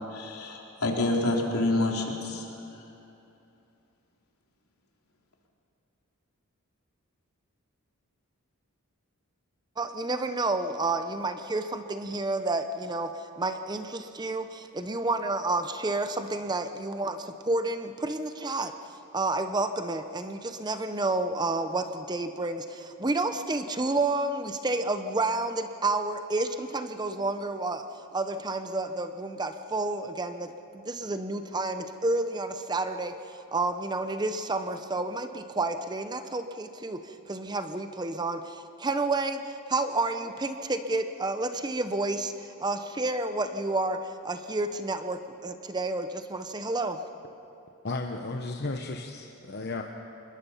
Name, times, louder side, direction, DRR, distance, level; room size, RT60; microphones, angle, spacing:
voice 1, 0.1-2.5, left 2 dB, 80° left, -1 dB, 3.4 m, -27 dB
voice 2, 9.8-18.7 19.1-27.9 28.1-47.0, right 2 dB, 20° right, 8 dB, 0.7 m, -30 dB
voice 3, 47.8-49.8, left 3 dB, 45° left, 3 dB, 1.0 m, -34 dB
26.0 x 21.5 x 5.7 m, 2.7 s
head